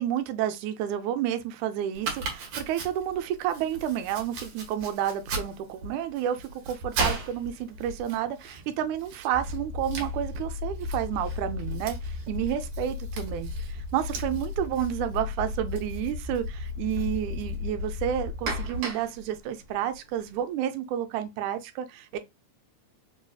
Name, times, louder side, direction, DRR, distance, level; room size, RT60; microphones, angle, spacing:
voice 1, 0.0-22.2, right 10 dB, 80° right, 1.9 m, -30 dB
Domestic sounds home sounds, 1.9-20.4, right 3 dB, 65° right, 1.9 m, -39 dB
sound 1, 9.3-18.6, left 4 dB, 85° left, 2.1 m, -35 dB
4.9 x 2.6 x 2.3 m
omnidirectional pair, 3.5 m